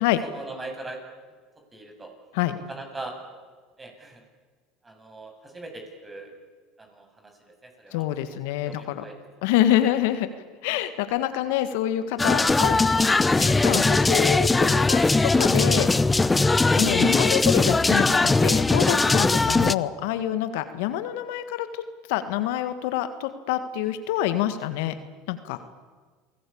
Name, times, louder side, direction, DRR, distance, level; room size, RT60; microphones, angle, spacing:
voice 1, 0.2-1.0 1.7-2.1 2.7-3.2 3.8-4.2 4.8-6.3 6.8-7.3 7.6-8.0 8.7-9.1 9.9-10.0 19.3-19.5, right 2 dB, 20° right, 4 dB, 7.5 m, -40 dB
voice 2, 7.9-9.0 9.4-10.3 10.6-13.1 13.4-15.9 16.8-21.8 22.1-24.9 25.3-25.6, left 12 dB, 75° left, 11 dB, 1.6 m, -26 dB
sound 1, 12.2-19.7, left 3 dB, 15° left, 0.7 m, -20 dB
27.5 x 19.0 x 8.6 m, 1.5 s
hypercardioid pair, 80°, 0 cm